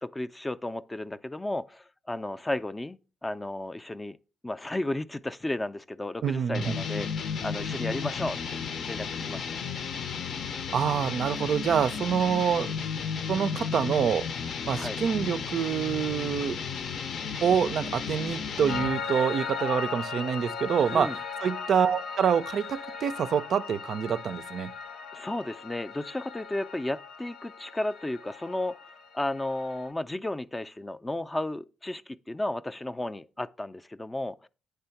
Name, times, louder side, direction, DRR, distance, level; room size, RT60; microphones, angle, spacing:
voice 1, 0.0-4.2 4.4-8.6 8.8-9.5 14.7-15.0 20.9-21.2 25.1-28.8 29.1-34.5, left 1 dB, 15° left, 0.4 m, -33 dB
voice 2, 6.2-6.7 10.7-12.7 13.3-14.3 14.7-16.6 17.4-21.1 21.4-24.7, right 7 dB, 60° right, 0.4 m, -26 dB
sound 1, 6.5-19.1, left 6 dB, 65° left, 0.6 m, -34 dB
Piano, 18.7-29.9, left 5 dB, 80° left, 1.0 m, -38 dB
8.9 x 3.4 x 5.7 m
cardioid pair, 90°, 0 cm